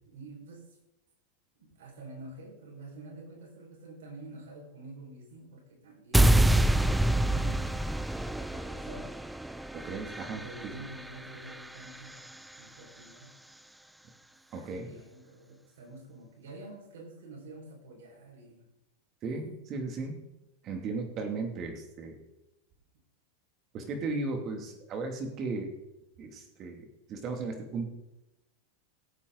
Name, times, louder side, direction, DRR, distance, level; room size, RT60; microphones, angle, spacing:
voice 1, 0.1-0.6 1.6-7.9 8.2-9.1 10.3-12.3 12.6-13.4 14.5-18.7, right 2 dB, 85° right, -1 dB, 5.6 m, -48 dB
sound 1, 6.1-12.3, right 1 dB, 5° right, 0.5 m, -27 dB
voice 2, 9.7-10.4 14.5-14.9 19.2-20.2 20.6-22.1 23.7-25.7 26.2-26.8 27.1-27.8, right 3 dB, 35° right, 3 dB, 2.8 m, -35 dB
17.5 x 8.3 x 4.1 m, 0.92 s
supercardioid pair, 140°, 0 cm